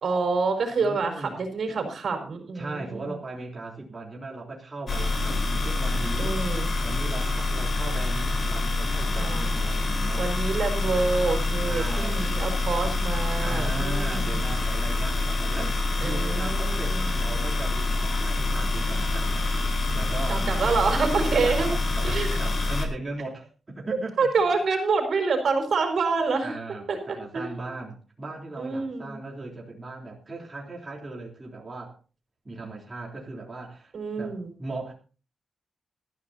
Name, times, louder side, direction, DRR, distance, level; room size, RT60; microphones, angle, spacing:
voice 1, 0.0-3.1 6.2-6.7 9.1-9.5 10.2-14.4 16.0-17.1 20.3-21.7 22.0-22.3 24.2-26.5 26.9-27.6 28.6-29.2 33.9-34.5, right 4 dB, 60° right, 5 dB, 4.5 m, -27 dB
voice 2, 0.8-1.4 2.5-6.4 6.8-10.3 11.6-12.4 13.4-24.3 26.4-32.0 32.5-34.9, right 2 dB, 25° right, -2 dB, 3.5 m, -38 dB
sound 1, 4.9-22.9, left 2 dB, 45° left, 4.1 m, -26 dB
20.0 x 14.0 x 2.8 m, 0.36 s
wide cardioid pair, 120°, 0 cm